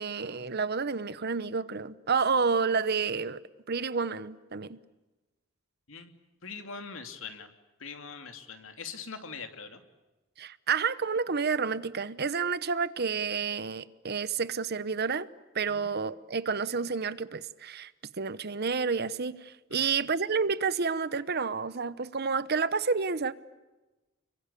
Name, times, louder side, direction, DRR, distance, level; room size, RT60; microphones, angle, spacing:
voice 1, 0.0-3.4 3.7-4.8 10.4-15.3 15.5-17.9 18.2-23.3, right 5 dB, 55° right, 1.0 m, -30 dB
voice 2, 6.4-7.5 7.8-9.8 15.7-15.9 19.7-19.9, left 5 dB, 75° left, 2.8 m, -42 dB
30.0 x 23.0 x 8.4 m
head